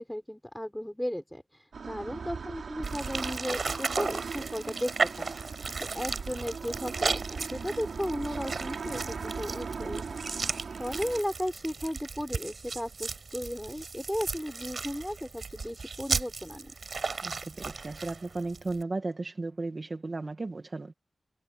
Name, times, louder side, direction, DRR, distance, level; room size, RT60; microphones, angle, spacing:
voice 1, 0.0-1.4 1.8-5.3 5.8-10.2 10.8-16.7, equal, 5° left, 5.6 m, -35 dB
sound 1, 1.7-11.2, right 5 dB, 70° right, 3.2 m, -39 dB
sound 2, 2.8-18.8, right 4 dB, 50° right, 5.0 m, -35 dB
voice 2, 17.2-20.9, right 3 dB, 35° right, 1.4 m, -35 dB
wide cardioid pair, 140°, 0 cm